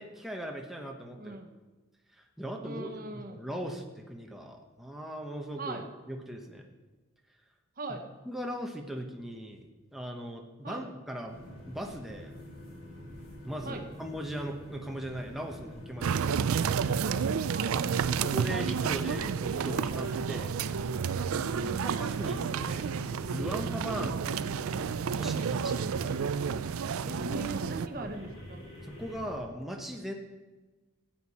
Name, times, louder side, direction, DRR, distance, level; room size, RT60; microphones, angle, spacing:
voice 1, 0.0-1.4 2.1-6.7 8.3-9.7 9.9-11.4 11.7-12.4 13.4-16.5 18.1-20.5 21.7-22.9 23.3-24.6 25.1-25.8 28.0-28.1 28.8-30.1, equal, ahead, 1 dB, 0.9 m, -39 dB
voice 2, 1.2-1.5 2.6-3.4 5.6-5.8 7.8-8.1 10.6-10.8 13.6-13.8 17.5-17.8 21.5-22.0 24.0-24.2 25.8-26.3 27.1-28.6, right 2 dB, 40° right, 6 dB, 0.8 m, -40 dB
sound 1, 11.3-29.4, equal, 80° left, 3.0 m, -46 dB
sound 2, 16.0-27.9, right 6 dB, 90° right, 0.4 m, -30 dB
sound 3, 19.5-20.1 22.1-23.1 25.1-26.1 28.1-29.1, left 2 dB, 30° left, 4.6 m, -53 dB
14.5 x 8.7 x 4.2 m, 1.2 s
head